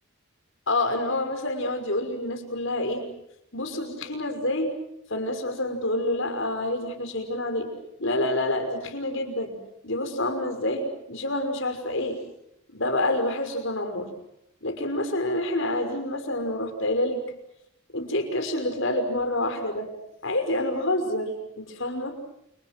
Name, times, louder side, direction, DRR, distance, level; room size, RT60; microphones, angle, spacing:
voice 1, 0.7-3.1 3.5-4.7 5.1-7.7 8.0-9.6 9.8-12.2 12.7-14.1 14.6-17.2 17.9-19.9 20.2-22.2, left 1 dB, 60° left, 6 dB, 5.9 m, -27 dB
29.5 x 29.5 x 6.2 m, 0.78 s
head